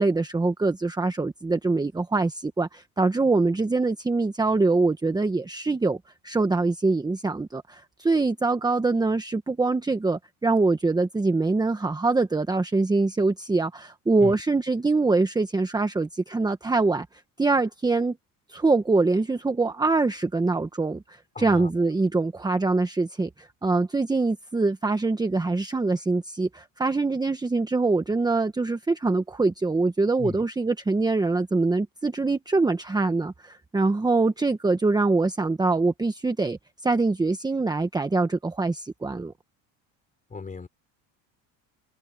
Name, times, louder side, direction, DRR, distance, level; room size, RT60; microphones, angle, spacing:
voice 1, 0.0-6.0 6.2-17.1 17.4-18.2 18.5-39.3, right 3 dB, 10° right, 1.2 m, -24 dB
voice 2, 21.3-21.7 30.2-30.4 40.3-40.7, left 4 dB, 20° left, 4.1 m, -35 dB
cardioid pair, 125°, 38 cm